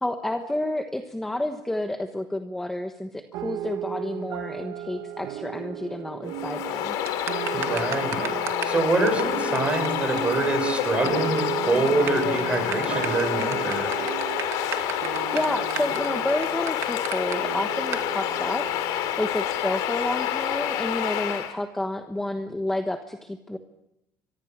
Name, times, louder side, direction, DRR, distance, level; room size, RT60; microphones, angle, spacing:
voice 1, 0.0-7.0 15.3-23.6, left 1 dB, 5° left, 6 dB, 1.2 m, -30 dB
sound 1, 3.3-20.1, right 11 dB, 80° right, 1.6 m, -35 dB
Bird vocalization bird call bird song, 6.3-21.5, left 11 dB, 85° left, 3.3 m, -28 dB
sound 2, 7.1-8.8 9.1-9.2 9.6-9.7 9.9-10.0 10.2-10.3 10.5-11.1 11.4-11.5 11.9-17.4 17.9-18.1, right 10 dB, 50° right, 2.3 m, -34 dB
voice 2, 7.5-8.3 8.6-13.9, right 3 dB, 20° right, 6 dB, 6.3 m, -25 dB
30.0 x 24.0 x 7.3 m, 0.87 s
cardioid pair, 160°, 6 cm